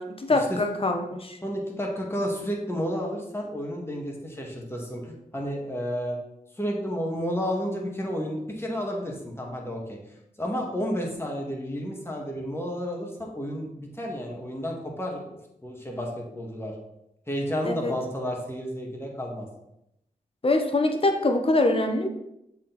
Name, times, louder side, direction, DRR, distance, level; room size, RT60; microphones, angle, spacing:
voice 1, 0.0-1.4 17.6-17.9 20.4-22.1, left 2 dB, 40° left, 4 dB, 1.1 m, -24 dB
voice 2, 1.4-6.2 6.6-10.0 10.4-15.3 15.6-16.7 17.3-19.5, equal, 15° left, -1 dB, 1.9 m, -31 dB
7.1 x 4.5 x 4.1 m, 0.83 s
cardioid pair, 60°, 15 cm